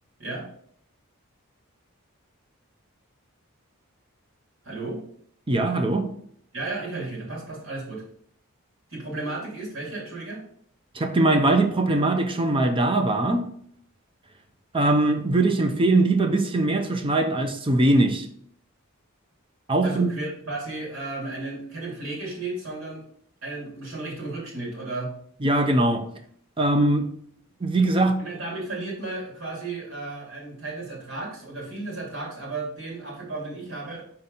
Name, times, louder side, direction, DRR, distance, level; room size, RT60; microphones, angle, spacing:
voice 1, 4.6-5.0 6.5-8.0 8.9-10.4 19.8-23.0 23.4-25.1 28.2-34.0, right 2 dB, 65° right, 2.7 m, -34 dB
voice 2, 5.5-6.1 10.9-13.5 14.7-18.3 19.7-20.1 25.4-26.1 26.6-27.1 27.6-28.2, right 2 dB, 25° right, 0.6 m, -21 dB
5.9 x 4.4 x 3.9 m
head